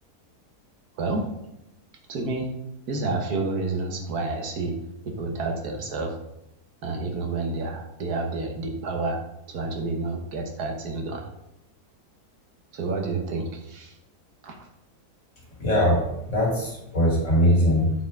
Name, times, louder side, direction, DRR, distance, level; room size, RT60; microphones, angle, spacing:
voice 1, 2.1-2.5 2.9-4.8 5.0-6.2 6.8-9.2 9.5-11.3 12.7-14.0 14.4-14.7, right 3 dB, 75° right, 3 dB, 1.6 m, -29 dB
voice 2, 15.6-17.9, equal, 50° left, -2 dB, 2.6 m, -21 dB
8.0 x 4.5 x 3.6 m, 0.85 s
omnidirectional pair, 1.7 m